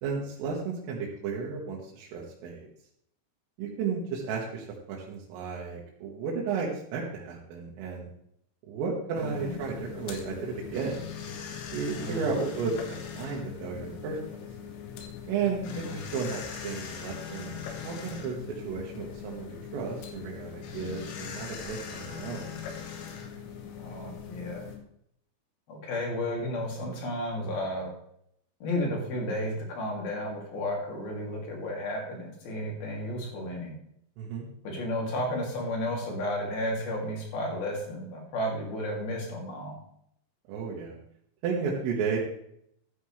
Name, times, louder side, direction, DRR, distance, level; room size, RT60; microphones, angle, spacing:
voice 1, 0.0-2.7 3.6-8.1 8.7-11.0 11.7-14.2 15.3-22.6 34.2-34.5 40.5-41.0 41.4-42.2, right 5 dB, 80° right, -3 dB, 4.2 m, -33 dB
sound 1, 9.1-24.8, left 7 dB, 80° left, 4.3 m, -41 dB
voice 2, 9.2-9.6 11.9-12.2 15.7-15.9 23.8-24.7 25.7-27.9 28.6-33.7 34.6-39.8, left 1 dB, 50° left, -1 dB, 4.3 m, -33 dB
13.0 x 9.5 x 3.3 m, 0.71 s
omnidirectional pair, 5.8 m